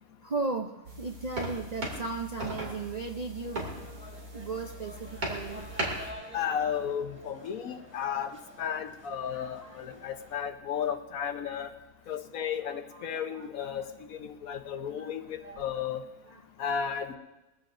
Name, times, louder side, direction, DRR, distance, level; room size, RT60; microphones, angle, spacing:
voice 1, 0.2-6.3 9.3-10.1 10.3-10.5 12.9-13.5 13.8-13.9 14.9-15.1 15.4-15.6 16.3-16.4, right 3 dB, 40° right, 2 dB, 0.6 m, -37 dB
sound 1, 0.8-6.1, right 1 dB, 85° right, 3.2 m, -38 dB
sound 2, 3.4-10.4, left 1 dB, 10° right, 1.7 m, -50 dB
voice 2, 6.3-11.7 12.1-16.1 16.6-17.2, left 8 dB, 75° left, 8 dB, 1.4 m, -34 dB
21.5 x 15.5 x 2.6 m, 1.0 s
omnidirectional pair, 1.5 m